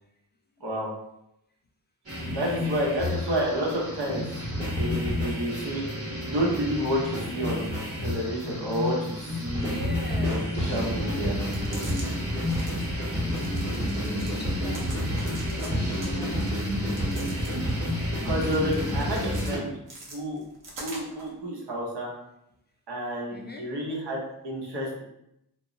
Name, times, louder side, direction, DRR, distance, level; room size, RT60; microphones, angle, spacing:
sound 1, 2.1-19.6, equal, 35° right, 1.0 m, -29 dB
voice 1, 2.3-4.2 4.7-5.8 6.3-7.7 8.0-9.7 10.3-11.3 18.2-19.7 20.1-20.4 20.8-22.1 22.9-25.0, equal, 85° right, -4 dB, 0.9 m, -30 dB
voice 2, 9.6-12.1 14.0-15.2 15.5-16.7 23.3-23.7, left 2 dB, 25° left, 0 dB, 0.3 m, -42 dB
sound 2, 11.4-12.1 12.4-12.9 13.3-14.4 14.7-15.7 16.0-17.8 18.2-19.5 19.9-21.3, right 2 dB, 55° right, 0.7 m, -44 dB
2.2 x 2.0 x 3.6 m, 0.81 s
wide cardioid pair, 120°, 39 cm